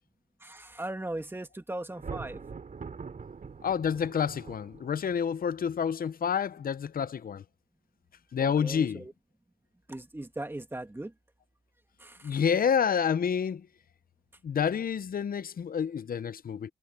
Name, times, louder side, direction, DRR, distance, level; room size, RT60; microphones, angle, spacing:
voice 1, 0.4-2.4 8.4-9.1 9.9-11.1 12.0-12.4, right 1 dB, 15° right, 1.9 m, -38 dB
Thunder, 1.9-5.2, right 5 dB, 50° right, 3.3 m, -43 dB
voice 2, 3.6-7.4 8.3-9.0 12.2-13.7 14.4-16.7, left 7 dB, 55° left, 0.7 m, -28 dB
wide cardioid pair, 105°, 18 cm